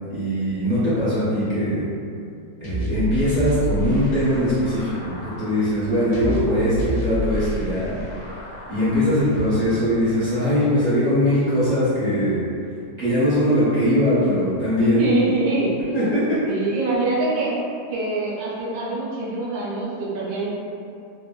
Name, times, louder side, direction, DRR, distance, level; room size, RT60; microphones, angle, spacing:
voice 1, 0.1-1.8 2.6-8.0 8.7-12.4 13.0-15.2 15.9-16.4, equal, 55° right, -13 dB, 0.4 m, -21 dB
sound 1, 2.6-9.6, right 1 dB, 65° left, 0.8 m, -30 dB
voice 2, 15.0-15.7 16.5-17.6 17.9-20.5, right 3 dB, 75° right, -6 dB, 1.2 m, -24 dB
3.2 x 2.1 x 2.2 m, 2.5 s
omnidirectional pair, 1.6 m